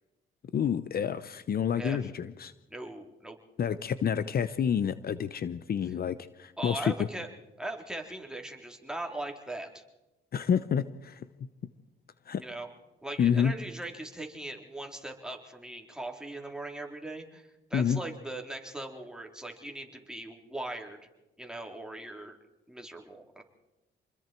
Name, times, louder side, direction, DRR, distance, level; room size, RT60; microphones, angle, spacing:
voice 1, 0.5-2.5 3.6-6.9 10.3-11.3 12.3-12.4 13.2-13.5 17.7-18.0, left 8 dB, 50° left, 13 dB, 0.9 m, -28 dB
voice 2, 2.7-3.4 6.6-7.3 7.6-9.8 12.4-12.7 13.0-21.0 21.4-22.4 22.7-23.4, right 1 dB, 5° right, 1 dB, 3.9 m, -40 dB
28.0 x 21.5 x 4.6 m, 0.99 s
cardioid pair, 90°, 20 cm